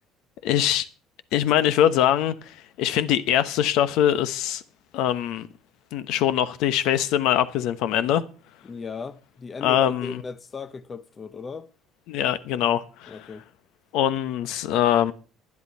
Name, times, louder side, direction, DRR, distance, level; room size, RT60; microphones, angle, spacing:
voice 1, 0.4-0.9 1.3-4.6 4.9-5.5 5.9-8.2 9.6-10.2 12.1-13.3 13.9-15.1, left 11 dB, 70° left, 1.0 m, -23 dB
voice 2, 8.6-11.7 13.1-13.5, left 5 dB, 25° left, 0.6 m, -37 dB
11.0 x 10.5 x 5.5 m
cardioid pair, 150°, 0 cm